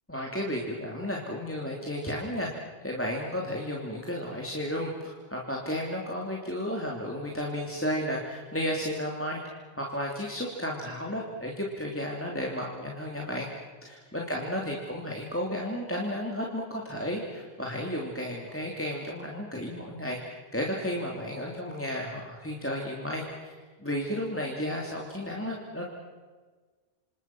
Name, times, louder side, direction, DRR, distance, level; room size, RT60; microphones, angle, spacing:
voice 1, 0.1-2.5 2.8-13.5 13.8-25.8, equal, 10° left, -2 dB, 3.0 m, -33 dB
27.5 x 27.5 x 6.1 m, 1.4 s
omnidirectional pair, 1.2 m